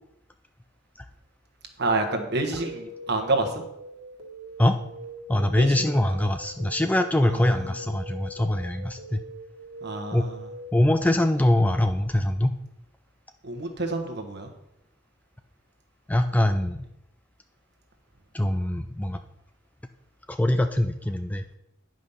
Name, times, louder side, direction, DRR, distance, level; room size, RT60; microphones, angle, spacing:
voice 1, 1.8-3.6 5.5-5.8 7.2-7.4 9.8-10.4 13.4-14.5, right 2 dB, 55° right, 4 dB, 1.2 m, -28 dB
sound 1, 1.8-11.4, right 1 dB, 70° right, 1.8 m, -42 dB
voice 2, 5.3-9.2 10.1-10.3 10.7-12.6 16.1-16.8 18.3-19.2 20.3-21.4, left 1 dB, 5° left, 8 dB, 0.3 m, -23 dB
9.6 x 5.2 x 5.6 m, 0.85 s
head